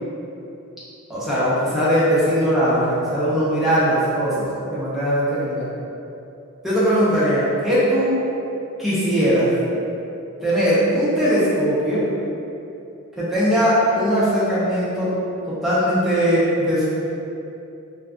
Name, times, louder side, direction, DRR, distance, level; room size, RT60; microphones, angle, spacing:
voice 1, 1.1-5.7 6.6-8.2 8.8-9.5 10.4-12.1 13.2-15.1 15.5-16.9, equal, ahead, -11 dB, 0.7 m, -20 dB
2.4 x 2.4 x 3.4 m, 2.7 s
head